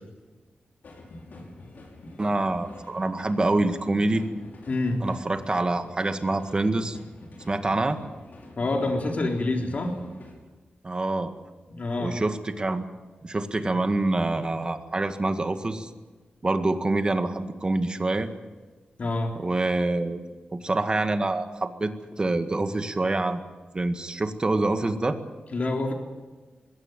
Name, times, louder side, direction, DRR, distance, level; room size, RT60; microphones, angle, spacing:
sound 1, 0.8-10.3, left 1 dB, 65° left, 5.7 m, -46 dB
voice 1, 2.2-4.2 5.0-7.0 7.5-8.0 10.8-11.3 12.0-12.8 13.2-15.9 16.4-18.3 19.4-20.2 20.5-23.4 23.7-25.2, right 2 dB, 30° right, 8 dB, 1.8 m, -26 dB
voice 2, 4.7-5.0 8.6-10.0 11.7-12.2 19.0-19.4 25.5-25.9, left 2 dB, 50° left, 2 dB, 3.7 m, -27 dB
21.0 x 17.0 x 9.1 m, 1.3 s
wide cardioid pair, 100°, 3 cm